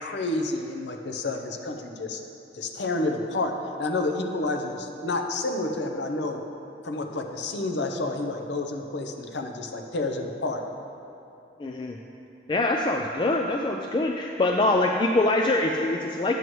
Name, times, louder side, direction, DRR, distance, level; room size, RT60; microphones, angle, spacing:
voice 1, 0.0-2.2 2.5-6.4 6.8-10.6, left 2 dB, 75° left, 4 dB, 0.7 m, -29 dB
voice 2, 11.6-12.0 12.5-16.4, left 2 dB, 25° left, 2 dB, 0.3 m, -24 dB
11.0 x 7.9 x 3.1 m, 2.8 s
head